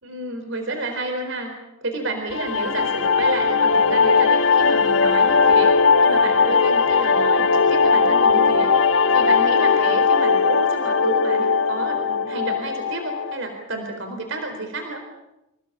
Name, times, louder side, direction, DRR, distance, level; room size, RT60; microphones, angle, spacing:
voice 1, 0.0-1.5 1.8-5.8 6.0-15.1, right 2 dB, 70° right, 4 dB, 4.2 m, -30 dB
sound 1, 2.3-13.4, left 5 dB, 75° left, 1.3 m, -18 dB
27.5 x 17.0 x 8.8 m, 0.93 s
head